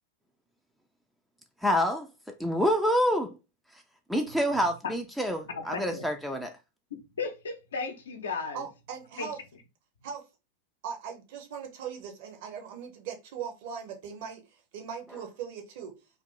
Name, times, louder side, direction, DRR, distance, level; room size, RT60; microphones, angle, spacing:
voice 1, 1.6-2.1 2.4-3.4 4.1-6.5, equal, ahead, 0.4 m, -27 dB
voice 2, 5.5-6.1 6.9-8.7 9.2-9.3, left 4 dB, 65° left, 0.6 m, -35 dB
voice 3, 8.5-9.4 10.0-10.3 10.8-15.9, right 7 dB, 50° right, 0.7 m, -39 dB
2.5 x 2.5 x 3.8 m
figure-of-eight pair, 90°, 0 cm